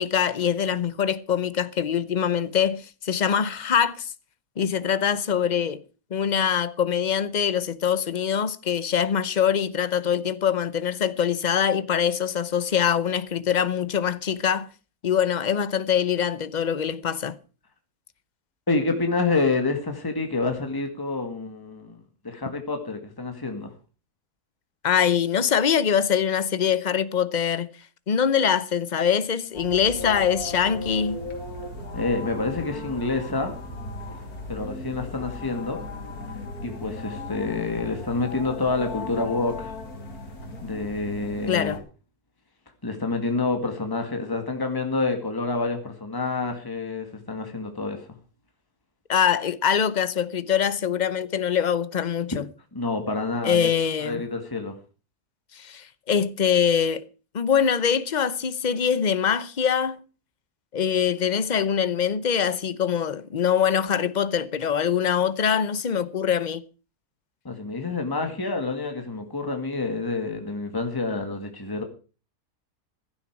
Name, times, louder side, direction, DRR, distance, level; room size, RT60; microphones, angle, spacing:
voice 1, 0.0-4.1 4.6-5.8 6.1-14.7 15.0-17.3 24.8-27.7 28.1-31.2 41.5-41.8 49.1-52.4 53.4-54.2 55.5-57.1 57.3-60.0 60.7-66.6, left 8 dB, 45° left, 0.6 m, -23 dB
voice 2, 18.7-22.0 22.2-23.7 31.9-33.5 34.5-35.8 36.6-39.7 40.6-41.8 42.8-48.1 52.7-53.7 54.0-54.7 67.4-71.8, left 3 dB, 15° left, 2.0 m, -28 dB
sound 1, 29.5-41.8, left 2 dB, 65° left, 3.1 m, -36 dB
15.5 x 11.5 x 4.7 m
omnidirectional pair, 1.7 m